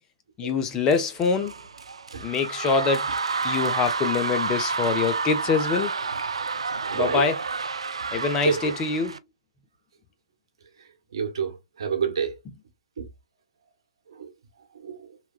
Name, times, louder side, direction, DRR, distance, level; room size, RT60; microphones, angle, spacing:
voice 1, 0.4-1.5 2.2-3.1 3.4-5.9 6.9-7.4 8.1-9.2, left 5 dB, 20° left, 0.5 m, -24 dB
sound 1, 0.9-9.2, right 4 dB, 80° right, 0.3 m, -30 dB
voice 2, 6.9-7.2 8.4-8.6 11.1-12.3 13.0-13.1 14.2-14.3 14.8-14.9, right 7 dB, 60° right, 1.0 m, -27 dB
2.9 x 2.2 x 2.3 m
figure-of-eight pair, 125°, 3 cm